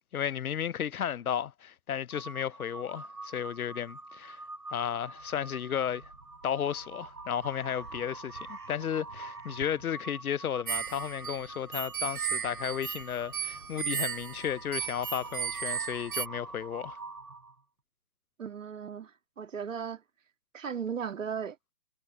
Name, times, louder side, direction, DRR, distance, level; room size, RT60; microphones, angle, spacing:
voice 1, 0.1-4.4 4.7-6.1 6.4-17.0, left 9 dB, 65° left, 0.6 m, -33 dB
Crow, 2.1-17.6, right 3 dB, 80° right, 5.1 m, -45 dB
sound 1, 10.7-16.3, right 8 dB, 35° right, 1.0 m, -35 dB
voice 2, 18.4-19.1 19.4-20.0 20.5-21.6, right 7 dB, 55° right, 2.2 m, -36 dB
figure-of-eight pair, 135°, 47 cm